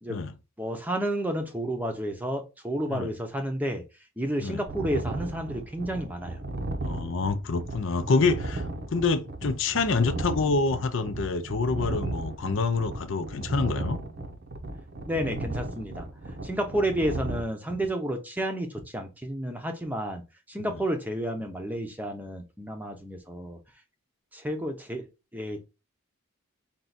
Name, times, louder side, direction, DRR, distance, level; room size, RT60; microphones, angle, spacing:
voice 1, 0.6-3.8 4.2-6.4 15.1-20.2 20.5-23.6 24.3-25.7, right 1 dB, 10° right, 0.7 m, -31 dB
sound 1, 4.7-17.4, right 2 dB, 45° right, 0.7 m, -35 dB
voice 2, 6.8-14.0 20.6-20.8, left 4 dB, 60° left, 0.5 m, -27 dB
4.6 x 2.5 x 4.0 m
head